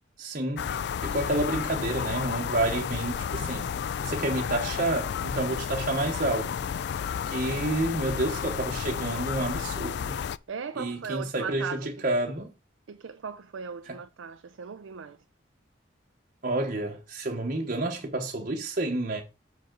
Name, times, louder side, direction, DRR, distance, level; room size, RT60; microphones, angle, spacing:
voice 1, 0.2-0.7 1.0-3.7 4.0-6.5 7.3-10.2 10.8-12.5 13.9-14.0 16.4-19.2, right 2 dB, 45° right, 1.1 m, -29 dB
sound 1, 0.6-10.4, left 7 dB, 60° left, 0.3 m, -32 dB
voice 2, 10.5-11.9 12.9-15.2, right 6 dB, 85° right, 0.5 m, -37 dB
7.7 x 5.6 x 3.8 m
head